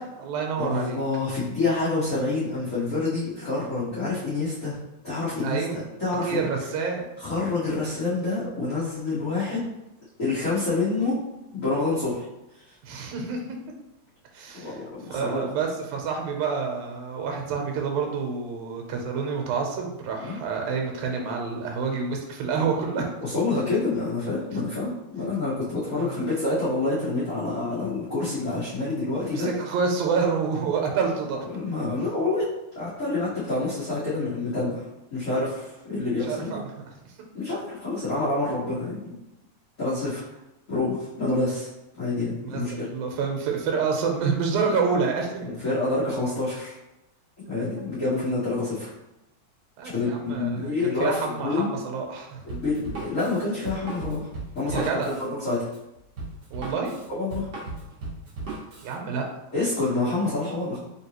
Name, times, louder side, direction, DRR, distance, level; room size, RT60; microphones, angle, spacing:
voice 1, 0.0-1.0 5.4-5.8 6.2-7.0 12.8-13.6 14.3-14.8 15.1-23.1 25.9-26.2 29.3-31.5 36.3-36.7 42.4-45.5 49.8-52.4 54.7-55.1 56.5-56.9 58.8-59.3, right 5 dB, 85° right, 2 dB, 2.1 m, -28 dB
voice 2, 0.6-4.8 5.0-5.6 6.0-6.5 7.2-9.7 10.2-11.2 11.5-12.3 12.5-12.7 14.5-15.4 20.2-20.4 22.9-29.5 31.4-32.5 32.7-36.6 37.3-39.2 39.8-40.2 40.7-41.7 41.9-42.9 45.4-46.7 47.5-48.9 49.9-51.7 52.4-54.3 54.5-55.7 57.1-57.5 59.5-60.8, left 3 dB, 45° left, -12 dB, 1.0 m, -27 dB
Drum kit, 52.5-58.9, right 2 dB, 60° right, 1.0 m, -37 dB
4.0 x 3.5 x 2.9 m, 0.90 s
omnidirectional pair, 3.3 m